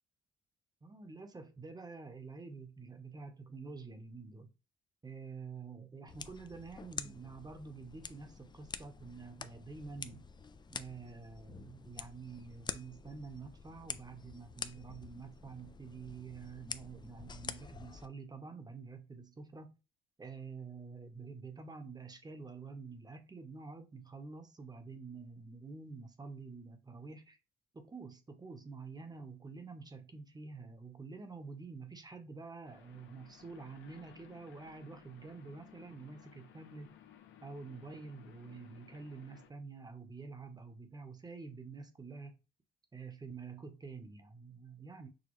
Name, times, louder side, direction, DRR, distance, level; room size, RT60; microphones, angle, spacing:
voice 1, 0.8-4.5 5.0-10.3 10.7-19.8 20.2-27.4 27.7-37.0 37.4-42.4 42.9-45.1, right 4 dB, 20° right, 0.9 m, -48 dB
sound 1, 6.1-18.1, left 5 dB, 25° left, 0.3 m, -47 dB
sound 2, 32.6-39.5, left 8 dB, 75° left, 0.8 m, -59 dB
6.3 x 2.2 x 3.1 m
cardioid pair, 90°, 20 cm